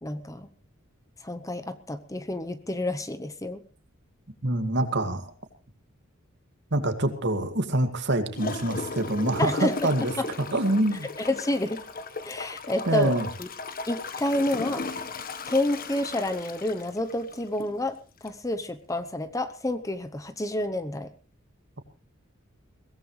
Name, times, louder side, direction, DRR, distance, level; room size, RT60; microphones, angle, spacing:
voice 1, 0.0-0.5 1.2-3.6 9.4-9.9 10.2-10.3 11.2-11.8 12.2-13.5 13.9-14.8 15.5-18.0 18.2-21.1, left 1 dB, 15° left, 10 dB, 0.9 m, -29 dB
voice 2, 4.4-5.3 6.7-10.1 10.5-11.1 12.9-13.3, right 1 dB, 60° right, 8 dB, 2.2 m, -25 dB
Gurgling / Toilet flush, 8.4-17.8 18.3-18.4, left 3 dB, 45° left, 1.4 m, -37 dB
22.5 x 17.0 x 3.3 m, 0.36 s
head